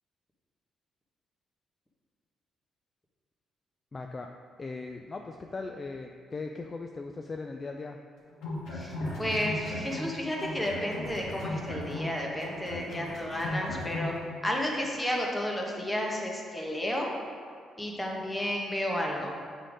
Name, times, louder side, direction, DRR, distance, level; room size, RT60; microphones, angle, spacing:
voice 1, 3.9-4.3 4.6-8.0, left 3 dB, 35° left, 3 dB, 0.3 m, -38 dB
sound 1, 8.3-10.1 10.4-14.1, left 2 dB, 80° left, 1.6 m, -36 dB
voice 2, 8.7-14.1 14.4-17.1 17.8-19.4, left 1 dB, 10° left, -1 dB, 1.1 m, -32 dB
6.6 x 3.8 x 4.9 m, 2.2 s
cardioid pair, 90°, 0 cm